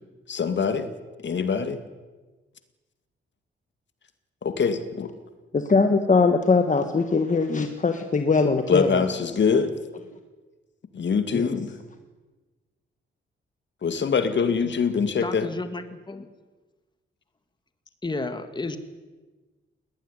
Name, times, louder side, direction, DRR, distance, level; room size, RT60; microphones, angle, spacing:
voice 1, 0.3-0.9 1.2-1.8 4.4-5.1 8.7-9.7 10.9-11.7 13.8-15.5, left 6 dB, 60° left, 10 dB, 2.1 m, -24 dB
voice 2, 5.5-9.1 11.3-11.4, left 4 dB, 35° left, 7 dB, 1.6 m, -21 dB
voice 3, 15.2-16.3 18.0-18.8, left 3 dB, 20° left, 9 dB, 1.8 m, -32 dB
20.0 x 19.0 x 10.0 m, 1.3 s
cardioid pair, 100°, 21 cm